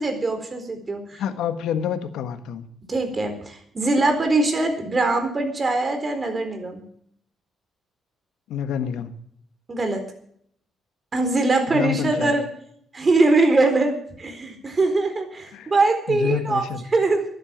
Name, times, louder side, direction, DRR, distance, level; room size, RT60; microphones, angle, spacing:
voice 1, 0.0-1.2 2.9-6.8 9.7-10.0 11.1-12.4 12.9-17.3, right 2 dB, 30° right, 6 dB, 4.0 m, -22 dB
voice 2, 1.2-2.7 8.5-9.1 11.7-12.3 15.5-15.7 16.1-16.8, left 9 dB, 85° left, 9 dB, 1.4 m, -28 dB
12.0 x 11.0 x 7.3 m, 0.65 s
cardioid pair, 90°, 0 cm